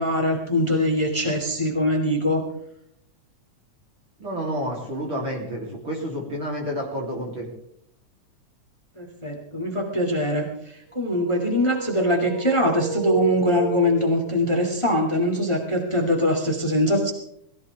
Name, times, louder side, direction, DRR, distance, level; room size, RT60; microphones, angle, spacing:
voice 1, 0.0-2.5 9.0-17.1, left 1 dB, 10° left, 3 dB, 2.0 m, -23 dB
voice 2, 4.2-7.5, equal, 40° right, -3 dB, 4.0 m, -29 dB
sound 1, 10.9-14.5, right 4 dB, 80° right, 3.2 m, -31 dB
21.5 x 16.0 x 3.5 m, 0.74 s
omnidirectional pair, 3.5 m